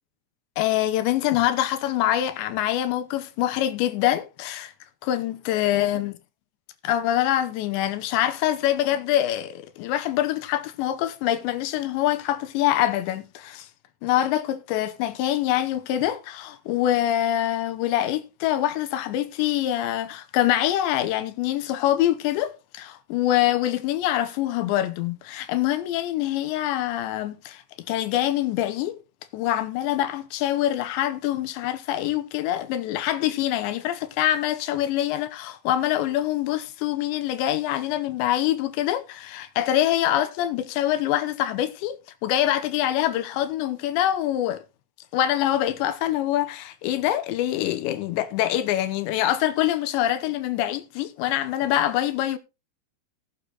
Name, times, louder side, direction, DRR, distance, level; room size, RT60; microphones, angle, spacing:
voice 1, 0.6-4.7 5.0-6.1 6.8-13.7 14.0-29.0 29.3-42.0 42.2-44.6 45.1-52.4, left 13 dB, 80° left, 2.8 m, -25 dB
16.5 x 6.8 x 4.0 m
omnidirectional pair, 5.8 m